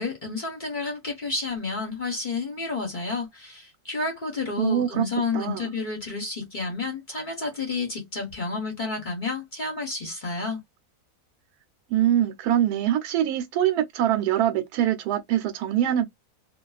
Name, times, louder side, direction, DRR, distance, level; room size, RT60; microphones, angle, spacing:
voice 1, 0.0-10.6, left 3 dB, 40° left, 0.8 m, -30 dB
voice 2, 4.6-5.1 5.3-5.7 11.9-16.1, right 11 dB, 85° right, 1.1 m, -23 dB
2.4 x 2.3 x 2.3 m
omnidirectional pair, 1.6 m